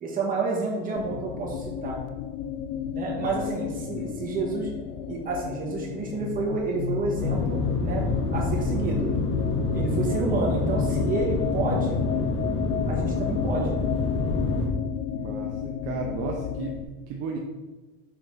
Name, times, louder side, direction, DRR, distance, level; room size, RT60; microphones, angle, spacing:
voice 1, 0.0-2.0 2.9-4.7 5.1-9.1 9.7-12.0 12.9-13.7, right 3 dB, 30° right, -3 dB, 1.5 m, -29 dB
sound 1, 1.0-16.8, left 8 dB, 80° left, 0.4 m, -31 dB
voice 2, 3.8-4.2 15.1-15.6 15.8-17.4, right 4 dB, 50° right, 0 dB, 0.7 m, -34 dB
sound 2, 7.2-14.7, left 2 dB, 20° left, 0.9 m, -28 dB
5.9 x 4.0 x 4.0 m, 1.2 s
cardioid pair, 140°, 30 cm